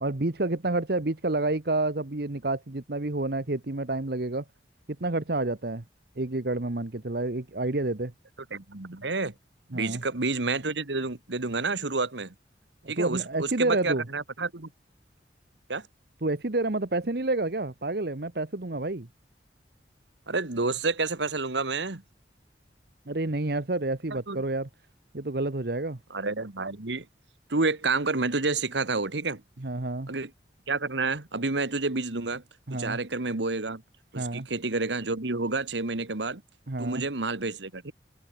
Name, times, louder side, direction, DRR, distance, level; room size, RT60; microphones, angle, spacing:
voice 1, 0.0-4.4 5.0-5.8 6.2-8.1 9.7-10.0 12.8-14.0 16.2-19.1 23.1-24.7 25.1-26.0 29.6-30.1 32.7-33.0 34.1-34.5 36.7-37.0, right 2 dB, 60° right, 1.2 m, -29 dB
voice 2, 8.5-9.3 9.7-12.3 12.9-14.7 15.7-15.9 20.3-22.0 24.3-24.4 26.1-27.1 27.5-29.4 30.1-30.3 30.7-32.4 32.7-33.8 34.1-36.4 36.8-37.9, right 3 dB, 85° right, 1.7 m, -29 dB
open air
head